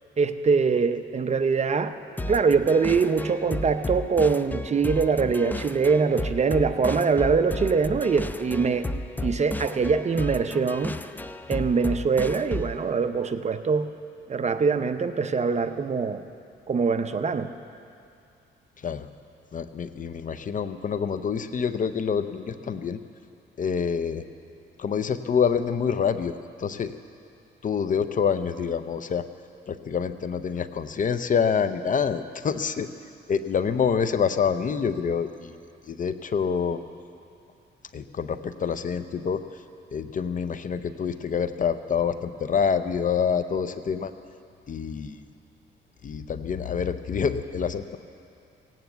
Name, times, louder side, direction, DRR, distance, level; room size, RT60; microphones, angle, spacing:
voice 1, 0.2-1.9 2.3-8.9 9.2-11.0 11.5-13.9 14.3-16.2 16.7-17.5, right 5 dB, 35° right, 9 dB, 0.7 m, -23 dB
sound 1, 2.2-12.8, left 1 dB, 10° left, 0.5 m, -33 dB
voice 2, 19.5-23.0 23.6-24.2 24.8-26.9 27.6-29.3 29.7-32.9 33.3-35.6 35.8-36.8 37.9-39.4 39.9-44.1 44.7-45.2 46.0-48.0, left 6 dB, 40° left, 11 dB, 0.7 m, -26 dB
17.0 x 9.3 x 7.9 m, 2.5 s
cardioid pair, 90°, 20 cm